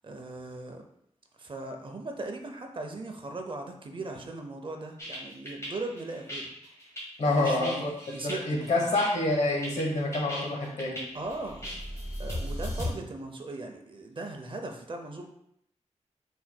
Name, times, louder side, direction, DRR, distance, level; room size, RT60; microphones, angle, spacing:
voice 1, 0.0-0.8 1.4-6.5 7.2-7.8 8.1-8.9 11.1-11.6 12.2-15.3, right 2 dB, 45° right, 4 dB, 0.6 m, -38 dB
sound 1, 5.0-12.9, left 1 dB, 25° left, 1.6 m, -37 dB
voice 2, 7.2-7.9 8.2-11.0, left 2 dB, 75° left, -1 dB, 1.1 m, -27 dB
4.4 x 4.4 x 2.2 m, 0.76 s
wide cardioid pair, 100°, 12 cm